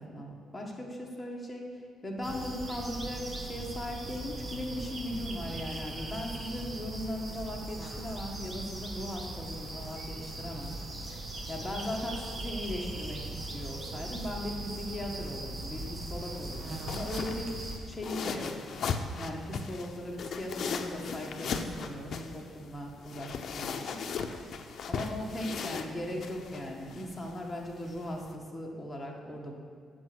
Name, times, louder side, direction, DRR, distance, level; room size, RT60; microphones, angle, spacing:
voice 1, 0.0-10.8 11.1-17.5 17.9-18.6 19.2-24.1 24.8-29.6, left 1 dB, 10° left, -2 dB, 1.7 m, -38 dB
sound 1, 2.2-17.8, right 2 dB, 30° right, 1.3 m, -39 dB
sound 2, 15.7-28.3, left 5 dB, 60° left, 0.6 m, -38 dB
8.8 x 6.2 x 6.2 m, 2.2 s
cardioid pair, 90°, 0 cm